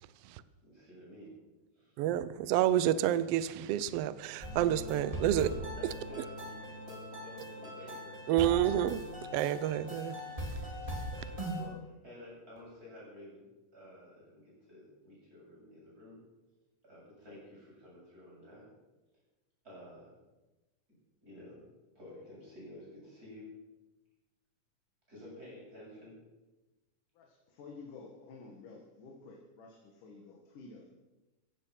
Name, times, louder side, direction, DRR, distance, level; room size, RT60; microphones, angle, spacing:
voice 1, 0.6-1.4 1.8-2.0 5.3-8.6 11.1-13.5 13.7-16.2 16.8-18.7 19.6-20.2 21.2-21.6 22.0-23.5 25.1-26.2, left 1 dB, 25° right, 8.5 m, -51 dB
voice 2, 2.0-5.5 8.3-9.0 9.3-10.2, right 12 dB, 80° right, 1.4 m, -29 dB
sound 1, 4.4-11.6, equal, 10° right, 3.5 m, -40 dB
voice 3, 27.2-30.9, left 4 dB, 85° left, 3.4 m, -51 dB
16.0 x 15.0 x 5.9 m
omnidirectional pair, 3.6 m